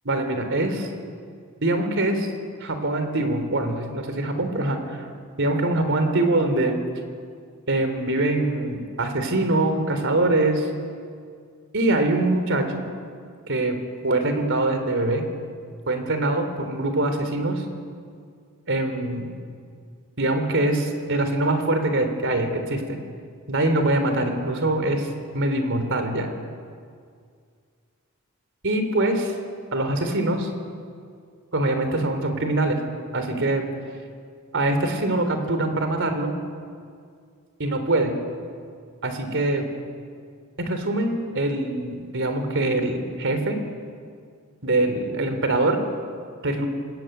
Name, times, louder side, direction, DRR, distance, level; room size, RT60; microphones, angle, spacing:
voice 1, 0.1-0.9 1.6-2.3 2.6-5.1 5.4-6.8 7.7-10.7 11.7-12.8 13.5-13.8 14.0-15.2 15.9-17.6 18.7-19.3 20.2-23.0 23.5-25.1 25.3-26.3 28.6-29.3 29.7-30.5 31.5-32.8 33.1-33.7 34.5-36.3 37.6-38.2 39.0-39.7 40.6-43.6 44.6-45.8 46.4-46.7, right 2 dB, 60° right, 7 dB, 3.5 m, -23 dB
26.5 x 21.0 x 9.3 m, 2.2 s
head